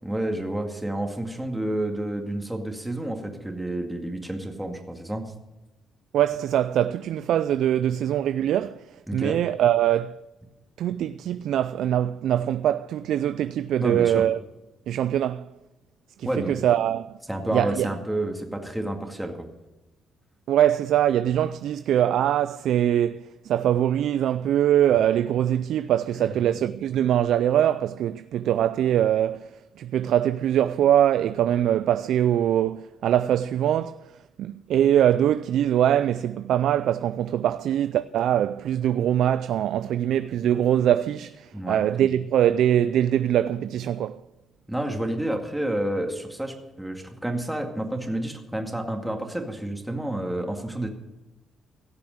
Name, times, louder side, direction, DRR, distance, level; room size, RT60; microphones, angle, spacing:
voice 1, 0.0-5.3 9.1-9.4 13.8-14.2 16.2-16.6 17.3-19.5 26.1-26.3 41.5-41.8 44.7-50.9, right 1 dB, 5° right, 2.1 m, -29 dB
voice 2, 6.1-10.2 10.8-14.4 14.9-15.5 16.2-17.2 17.5-17.9 20.5-34.1 34.4-44.2, right 11 dB, 75° right, 0.3 m, -23 dB
16.5 x 6.8 x 6.5 m
cardioid pair, 90°, 0 cm